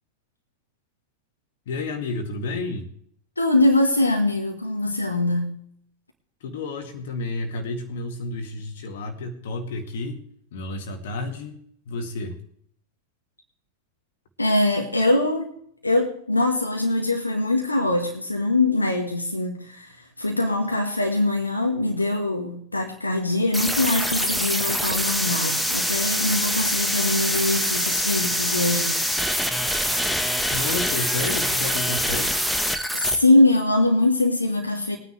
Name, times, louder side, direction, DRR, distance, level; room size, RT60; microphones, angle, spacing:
voice 1, 1.7-2.9 6.4-10.2 10.5-11.6 11.9-12.4 30.5-32.3, left 3 dB, 55° left, 6 dB, 2.1 m, -31 dB
voice 2, 3.4-5.5 14.4-15.5 15.8-28.9 32.9-35.0, left 2 dB, 80° left, 2 dB, 1.6 m, -22 dB
sound 1, 23.5-33.2, equal, ahead, 1.3 m, -24 dB
21.0 x 9.6 x 3.3 m, 0.64 s
figure-of-eight pair, 90°, 0 cm